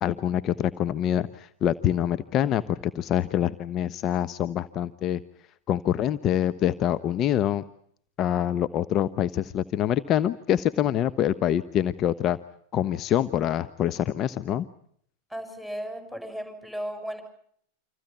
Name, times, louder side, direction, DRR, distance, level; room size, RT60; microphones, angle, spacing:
voice 1, 0.0-5.2 5.7-7.6 8.2-12.4 12.7-14.7, left 10 dB, 35° left, 14 dB, 1.0 m, -25 dB
voice 2, 15.3-17.2, equal, ahead, 7 dB, 7.7 m, -35 dB
29.0 x 27.0 x 5.8 m, 0.65 s
figure-of-eight pair, 90°, 0 cm